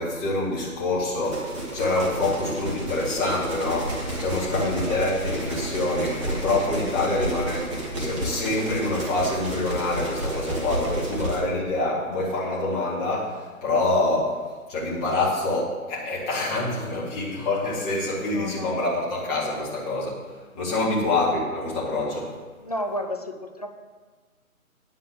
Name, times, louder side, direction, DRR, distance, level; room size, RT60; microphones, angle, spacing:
voice 1, 0.0-7.6 8.0-14.4 14.7-22.3, left 2 dB, 5° left, -7 dB, 1.1 m, -26 dB
sound 1, 1.2-11.4, right 1 dB, 20° right, 1.6 m, -31 dB
voice 2, 4.5-5.0 7.0-7.4 18.3-18.7 20.7-20.9 22.6-23.7, left 1 dB, 30° left, 5 dB, 0.6 m, -33 dB
9.9 x 5.5 x 7.8 m, 1.4 s
figure-of-eight pair, 155°, 43 cm